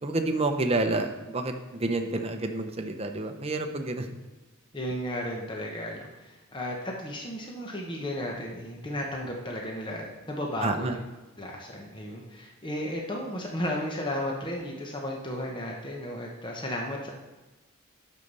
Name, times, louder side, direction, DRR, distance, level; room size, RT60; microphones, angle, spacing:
voice 1, 0.0-4.1 10.6-10.9, right 2 dB, 25° right, 5 dB, 0.7 m, -29 dB
voice 2, 4.7-10.9 11.4-17.1, left 1 dB, 20° left, -1 dB, 1.0 m, -34 dB
8.4 x 6.5 x 5.4 m, 1.1 s
head